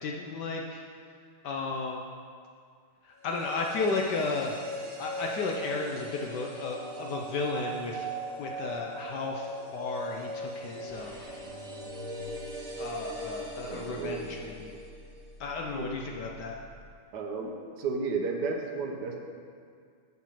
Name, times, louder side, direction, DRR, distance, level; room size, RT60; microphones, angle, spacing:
voice 1, 0.0-0.8 1.4-2.0 3.2-4.6 5.0-8.1 8.4-11.2 12.8-14.7 15.4-16.6, left 3 dB, 70° left, 1 dB, 1.0 m, -33 dB
sound 1, 3.2-15.3 15.6-15.7, right 1 dB, 85° right, 2.0 m, -40 dB
sound 2, 10.9-16.9, left 1 dB, 45° left, 2.3 m, -50 dB
voice 2, 13.6-14.3 14.6-14.8 15.7-15.9 17.1-19.2, right 4 dB, 65° right, 2 dB, 1.2 m, -33 dB
7.1 x 5.9 x 5.7 m, 2.2 s
omnidirectional pair, 2.3 m